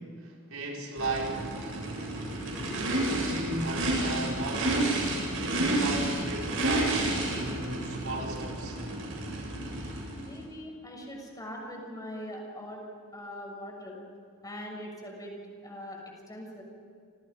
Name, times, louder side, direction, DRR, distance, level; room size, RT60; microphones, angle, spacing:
voice 1, 0.0-1.5 3.0-7.0 7.3-8.8, right 2 dB, 80° right, -1 dB, 5.2 m, -36 dB
Race car auto racing / Idling / Accelerating revving vroom, 1.0-10.4, right 1 dB, 65° right, 7.6 m, -30 dB
voice 2, 10.2-12.8 13.1-14.0 14.4-15.3 15.6-16.0 16.3-16.6, equal, 15° left, 0 dB, 6.8 m, -42 dB
29.0 x 28.0 x 5.3 m, 2.4 s
head